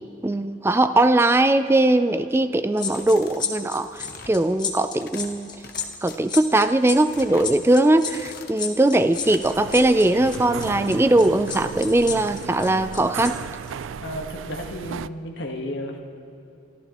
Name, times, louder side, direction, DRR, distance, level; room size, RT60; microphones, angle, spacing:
voice 1, 0.2-5.5 6.0-13.4, right 1 dB, 15° right, 11 dB, 0.3 m, -20 dB
sound 1, 2.8-3.5 3.8-4.4 4.8-5.3 5.6-6.2 6.6-7.5 7.9-8.6 9.0-9.5, left 5 dB, 50° left, 1.0 m, -44 dB
sound 2, 2.8-13.3 13.6-13.8, left 7 dB, 20° left, 1.1 m, -32 dB
sound 3, 9.4-15.1, right 7 dB, 85° right, 0.3 m, -35 dB
voice 2, 14.0-16.0, left 1 dB, 65° left, 1 dB, 1.4 m, -33 dB
29.5 x 13.5 x 3.0 m, 2.8 s
head